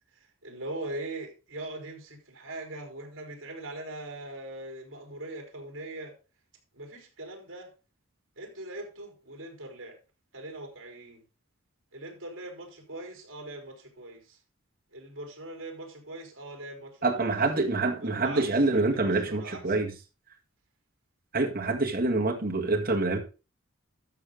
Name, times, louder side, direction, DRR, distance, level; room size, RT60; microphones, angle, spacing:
voice 1, 0.4-6.1 6.7-7.7 8.4-10.0 10.3-11.2 11.9-14.4 14.9-17.3 17.7-19.9, right 1 dB, 60° right, 4.2 m, -41 dB
voice 2, 17.0-19.9 21.3-23.2, right 3 dB, 45° right, 1.9 m, -26 dB
13.0 x 6.6 x 3.7 m
head